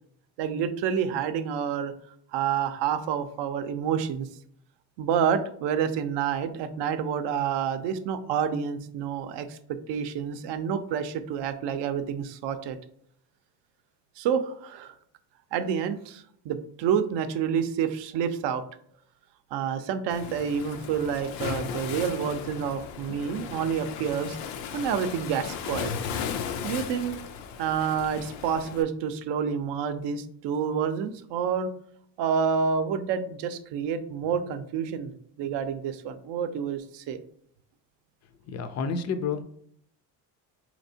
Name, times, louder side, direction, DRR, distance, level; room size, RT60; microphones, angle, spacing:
voice 1, 0.4-1.9 2.3-4.3 5.0-12.8 14.2-15.0 15.5-18.6 19.5-24.4 24.7-25.9 26.6-27.2 27.6-31.7 32.2-35.1 35.4-37.2, right 7 dB, 70° right, 10 dB, 0.6 m, -28 dB
Waves surf, 20.1-28.8, left 7 dB, 85° left, 0.6 m, -36 dB
voice 2, 38.5-39.4, left 5 dB, 40° left, 10 dB, 0.4 m, -29 dB
4.2 x 2.9 x 2.7 m, 0.66 s
cardioid pair, 100°, 45 cm